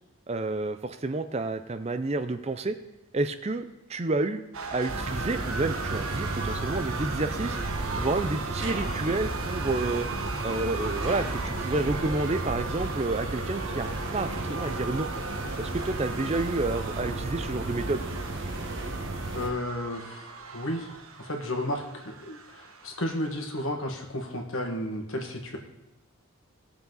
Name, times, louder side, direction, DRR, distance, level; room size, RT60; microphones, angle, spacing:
voice 1, 0.3-2.8 3.1-4.4 4.7-7.6 8.0-10.1 10.4-15.1 15.6-18.1, right 2 dB, 30° right, 10 dB, 0.5 m, -30 dB
sound 1, 4.5-23.6, right 4 dB, 80° right, 1.2 m, -38 dB
sound 2, 4.9-19.5, right 2 dB, 55° right, 1.4 m, -34 dB
sound 3, 7.7-10.8, left 1 dB, 20° left, 0.9 m, -46 dB
voice 2, 19.3-20.9 21.2-25.6, left 1 dB, 70° left, 3 dB, 1.7 m, -33 dB
18.0 x 7.0 x 4.0 m, 0.94 s
head